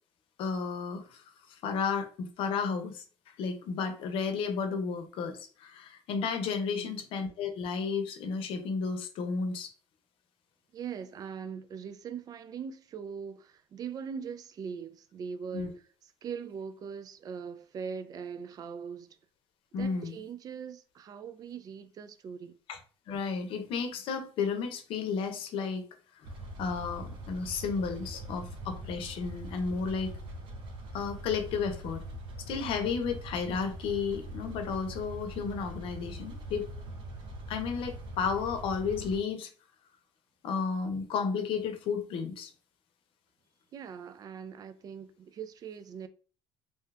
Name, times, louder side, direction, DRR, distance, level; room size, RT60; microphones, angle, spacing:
voice 1, 0.4-3.0 3.4-9.7 15.5-15.7 19.7-20.2 22.7-22.8 23.1-25.8 26.6-30.1 30.9-32.0 32.5-36.7 37.5-39.5 40.4-42.5, left 5 dB, 70° left, 0.7 m, -33 dB
voice 2, 6.7-7.0 10.7-15.8 16.2-19.2 19.7-22.6 43.7-46.1, right 6 dB, 40° right, 0.4 m, -41 dB
sound 1, 26.2-39.2, right 1 dB, 60° right, 0.7 m, -42 dB
2.8 x 2.3 x 3.3 m
cardioid pair, 120°, 10 cm